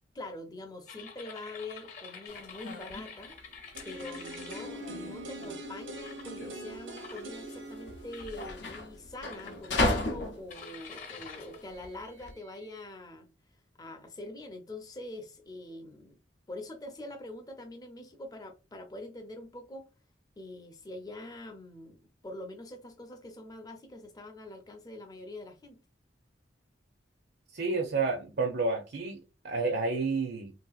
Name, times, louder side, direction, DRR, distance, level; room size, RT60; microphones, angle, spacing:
voice 1, 0.1-3.4 3.8-13.3 13.8-16.2 16.5-19.8 20.4-25.8, left 2 dB, 20° left, 0.5 m, -44 dB
sound 1, 0.9-5.5 6.0-6.4 7.0-7.7 8.1-8.5 9.2-10.0 10.5-12.8, left 5 dB, 40° left, 0.9 m, -48 dB
sound 2, 2.3-12.3, left 2 dB, 70° left, 0.6 m, -36 dB
sound 3, 3.7-9.7 10.0-10.1, right 1 dB, 85° right, 0.8 m, -44 dB
voice 2, 27.5-30.5, right 3 dB, 60° right, 0.5 m, -30 dB
3.2 x 2.7 x 2.3 m
head